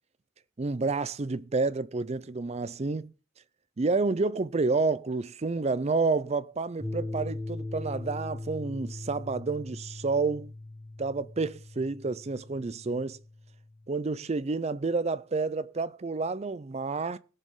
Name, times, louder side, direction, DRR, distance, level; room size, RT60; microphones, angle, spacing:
voice 1, 0.6-3.1 3.8-10.5 11.0-13.2 13.9-17.2, right 3 dB, 30° right, 0.5 m, -29 dB
sound 1, 6.8-13.9, left 2 dB, 10° right, 1.5 m, -40 dB
17.5 x 6.6 x 3.7 m
head